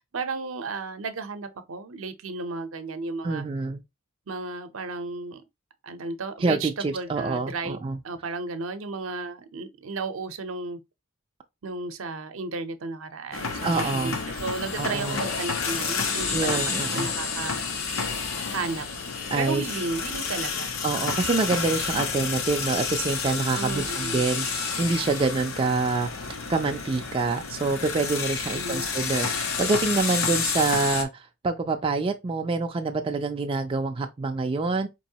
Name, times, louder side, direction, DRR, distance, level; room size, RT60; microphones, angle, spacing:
voice 1, 0.0-3.4 4.3-5.4 5.8-10.8 11.6-17.6 18.5-18.9 19.4-20.8 23.5-24.2 28.5-28.9, right 3 dB, 75° right, 0.6 m, -33 dB
voice 2, 3.2-3.8 6.4-8.0 13.6-14.2 14.8-15.2 16.3-17.1 19.3-19.6 20.8-34.9, right 3 dB, 25° right, 0.3 m, -26 dB
sound 1, 13.3-31.0, left 5 dB, 85° left, 0.8 m, -30 dB
4.5 x 3.0 x 2.7 m
head